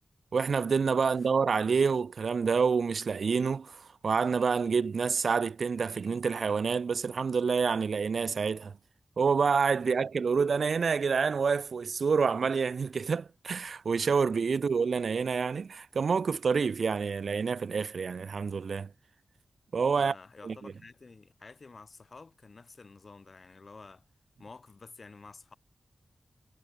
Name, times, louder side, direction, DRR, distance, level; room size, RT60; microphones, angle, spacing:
voice 1, 0.3-8.7 9.2-18.9 19.7-20.2 20.4-20.7, right 5 dB, 75° right, 0.4 m, -28 dB
voice 2, 20.0-24.0 24.4-25.5, left 4 dB, 55° left, 2.6 m, -51 dB
cardioid pair, 65°, 0 cm